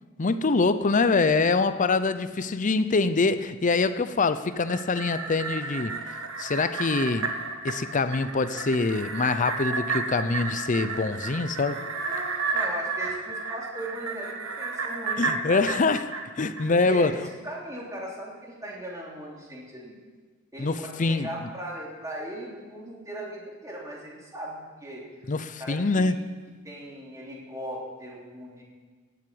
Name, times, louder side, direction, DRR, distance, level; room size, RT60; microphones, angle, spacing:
voice 1, 0.2-6.0 6.4-7.4 7.6-11.8 15.2-17.2 20.6-21.3 25.3-26.3, left 3 dB, 40° left, 12 dB, 0.6 m, -24 dB
sound 1, 4.5-17.1 17.5-17.6, right 4 dB, 80° right, 1.7 m, -32 dB
voice 2, 11.7-15.6 16.7-20.0 20.5-25.0 25.6-26.1 26.6-28.6, right 1 dB, 15° right, -4 dB, 3.3 m, -38 dB
17.5 x 7.6 x 8.7 m, 1.4 s
head